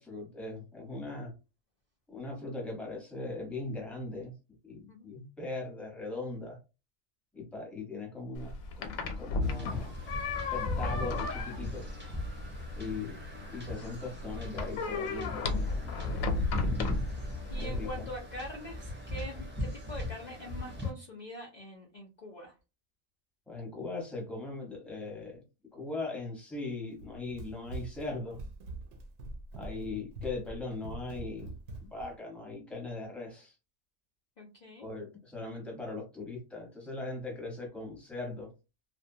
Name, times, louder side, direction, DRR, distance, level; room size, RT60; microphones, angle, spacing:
voice 1, 0.0-1.3 2.1-4.3 4.6-6.6 7.3-9.9 10.5-11.8 12.8-13.2 13.5-16.1 17.6-18.1 23.5-25.4 25.7-28.4 29.5-31.5 31.8-33.5 34.8-38.5, left 3 dB, ahead, -1 dB, 0.8 m, -39 dB
sound 1, 8.4-17.9, left 3 dB, 90° left, 1.0 m, -35 dB
sound 2, 9.4-20.9, left 2 dB, 15° right, 0.4 m, -38 dB
voice 2, 17.5-22.5 34.4-34.9, equal, 60° left, -1 dB, 0.4 m, -44 dB
Run, 26.9-32.1, right 2 dB, 70° right, 0.8 m, -44 dB
2.6 x 2.2 x 2.6 m, 0.29 s
omnidirectional pair, 1.4 m